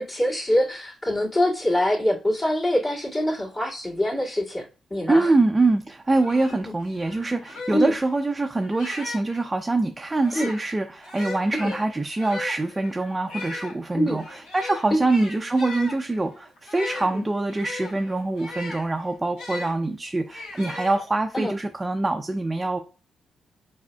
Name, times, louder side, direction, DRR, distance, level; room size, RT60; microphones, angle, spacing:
voice 1, 0.0-5.3 6.6-6.7 7.7-7.9 10.3-10.5 11.6-11.7 13.9-14.2 14.9-15.0 17.1-17.2 21.3-21.5, left 1 dB, 35° left, 2.3 m, -24 dB
voice 2, 5.1-22.8, right 2 dB, 25° right, 0.6 m, -24 dB
sound 1, 5.8-5.9 6.2-9.4 10.1-19.7 20.3-21.4, left 2 dB, 85° left, 2.3 m, -38 dB
4.8 x 4.1 x 2.3 m
hypercardioid pair, 50°, 0 cm